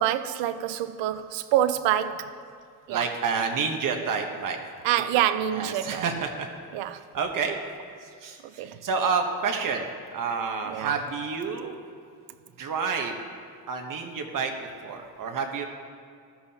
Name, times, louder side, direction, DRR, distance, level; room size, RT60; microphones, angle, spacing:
voice 1, 0.0-2.4 2.9-3.1 4.8-6.1 6.7-7.0 8.6-8.8 10.7-11.0, right 11 dB, 80° right, 0.7 m, -26 dB
voice 2, 2.9-4.6 5.1-5.2 5.5-6.5 7.1-7.6 8.0-9.9 10.1-11.7 12.6-13.2 13.7-15.7, right 5 dB, 45° right, 1.1 m, -29 dB
14.5 x 11.5 x 2.8 m
cardioid pair, 110°, 43 cm